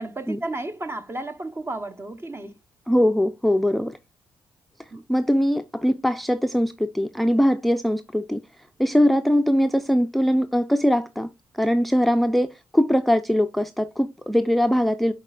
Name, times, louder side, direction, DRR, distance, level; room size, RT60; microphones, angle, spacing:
voice 1, 0.0-2.6 4.9-5.0, right 2 dB, 30° right, 0.9 m, -33 dB
voice 2, 2.9-4.0 5.1-8.4 8.8-11.3 11.6-15.1, equal, ahead, 0.5 m, -21 dB
10.5 x 4.1 x 2.4 m
cardioid pair, 65°, 9 cm